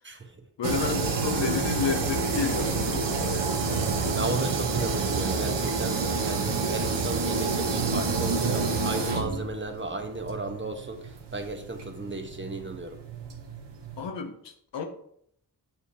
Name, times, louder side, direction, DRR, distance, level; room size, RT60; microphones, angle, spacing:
voice 1, 0.0-0.5 4.1-13.0, right 2 dB, 30° right, 4 dB, 1.2 m, -35 dB
voice 2, 0.6-4.2 12.0-12.1 14.0-14.8, left 6 dB, 90° left, 4 dB, 0.9 m, -32 dB
sound 1, 0.6-14.0, right 4 dB, 85° right, 1.1 m, -28 dB
8.8 x 5.0 x 2.9 m, 0.69 s
cardioid pair, 50°, 42 cm